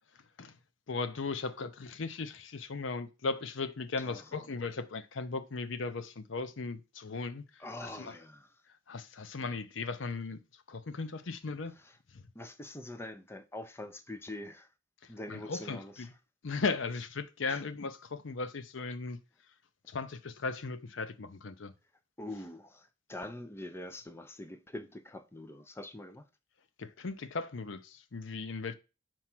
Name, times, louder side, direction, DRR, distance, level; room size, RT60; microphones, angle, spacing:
voice 1, 0.1-0.6 0.9-8.1 8.9-11.7 12.1-12.2 15.0-16.1 16.4-19.2 19.9-21.7 26.8-28.7, left 4 dB, 75° left, 0.6 m, -37 dB
voice 2, 4.0-4.5 7.6-8.6 9.4-9.5 11.8-12.0 12.3-14.7 15.1-16.1 17.5-17.6 22.2-26.3, left 1 dB, 15° left, 0.5 m, -44 dB
4.6 x 4.5 x 5.9 m
head